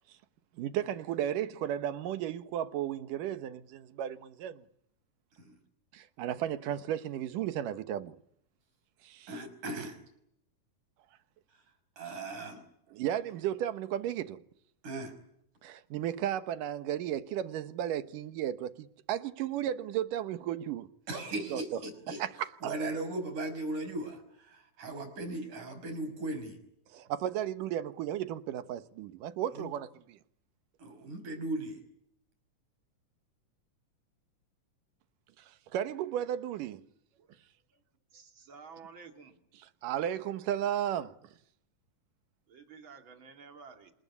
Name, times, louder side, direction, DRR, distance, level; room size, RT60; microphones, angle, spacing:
voice 1, 0.6-4.6 5.9-8.2 9.0-9.3 12.9-14.4 15.6-20.9 21.5-21.6 22.2-22.7 26.9-30.2 35.4-36.9 39.8-41.3, right 11 dB, 85° right, 2.9 m, -34 dB
voice 2, 9.3-10.0 11.5-11.6 12.0-12.6 14.8-15.2 21.1-22.2 22.6-26.6 29.5-29.7 30.8-31.8, right 2 dB, 70° right, 7.0 m, -38 dB
voice 3, 38.1-39.4 42.5-43.9, right 5 dB, 40° right, 3.4 m, -52 dB
28.0 x 19.0 x 9.7 m
omnidirectional pair, 3.7 m